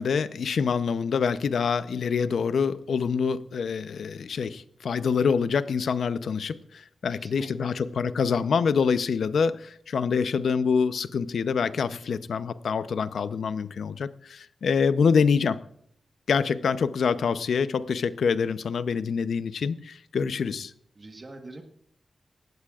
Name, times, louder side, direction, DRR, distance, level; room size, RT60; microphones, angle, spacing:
voice 1, 0.0-15.6 16.3-20.7, left 6 dB, 75° left, 12 dB, 0.7 m, -26 dB
voice 2, 7.1-7.7 20.9-21.6, right 2 dB, 25° right, 3 dB, 1.4 m, -43 dB
20.0 x 16.0 x 2.5 m, 0.67 s
wide cardioid pair, 180°, 0 cm